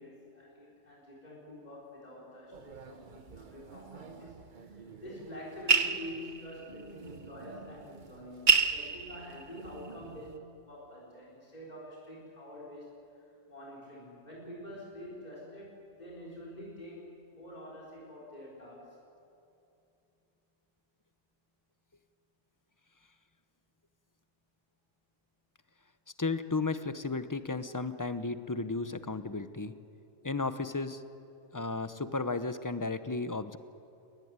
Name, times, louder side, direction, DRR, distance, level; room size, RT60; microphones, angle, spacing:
voice 1, 0.0-4.5 4.7-12.9 13.1-19.0, left 1 dB, 35° left, -5 dB, 4.8 m, -47 dB
sound 1, 2.5-10.4, right 5 dB, 45° right, 1.0 m, -33 dB
voice 2, 26.2-29.7 30.2-31.0 31.5-33.6, left 3 dB, 20° left, 11 dB, 0.7 m, -34 dB
22.5 x 20.0 x 9.7 m, 2.7 s
omnidirectional pair, 1.3 m